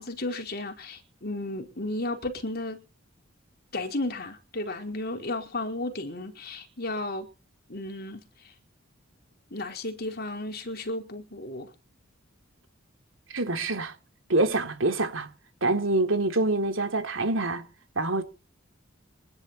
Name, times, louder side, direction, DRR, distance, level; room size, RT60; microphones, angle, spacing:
voice 1, 0.0-2.8 3.7-7.3 7.7-8.5 9.5-11.7, left 2 dB, 50° left, 4.8 m, -34 dB
voice 2, 13.3-13.9 14.3-15.3 15.6-17.7 17.9-18.2, right 2 dB, 75° right, 3.3 m, -25 dB
26.0 x 11.5 x 4.4 m
head